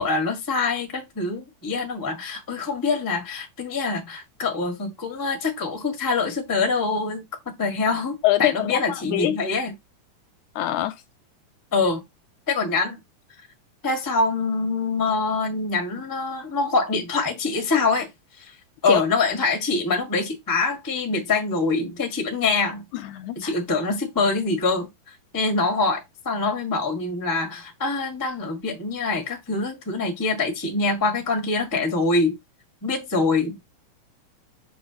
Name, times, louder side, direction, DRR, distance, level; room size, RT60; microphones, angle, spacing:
voice 1, 0.0-7.2 7.6-9.7 11.7-12.0 12.5-13.0 13.8-18.1 18.4-18.5 18.8-22.8 23.3-24.9 25.3-32.4 32.8-33.6, left 3 dB, 15° left, 0.7 m, -24 dB
voice 2, 8.2-9.4 10.6-11.0 18.9-19.0 22.9-23.5, left 14 dB, 80° left, 1.9 m, -24 dB
6.5 x 5.9 x 2.8 m
omnidirectional pair, 3.7 m